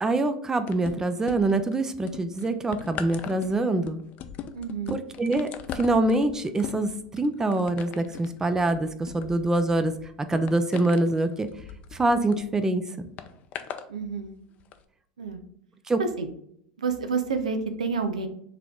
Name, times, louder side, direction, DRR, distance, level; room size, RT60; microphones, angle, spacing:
voice 1, 0.0-4.0 4.9-5.5 5.7-9.9 10.3-11.5 11.9-13.1 15.9-16.0, right 2 dB, 15° right, 10 dB, 0.5 m, -25 dB
sound 1, 0.7-1.7 2.1-12.4 13.2-13.9 14.6-14.7, left 8 dB, 45° left, 0.5 m, -40 dB
voice 2, 4.5-5.0 13.9-14.4 15.2-15.4 16.0-16.3 16.8-18.3, right 5 dB, 85° right, 7 dB, 0.6 m, -29 dB
4.9 x 3.0 x 3.6 m, 0.70 s
hypercardioid pair, 90°, 4 cm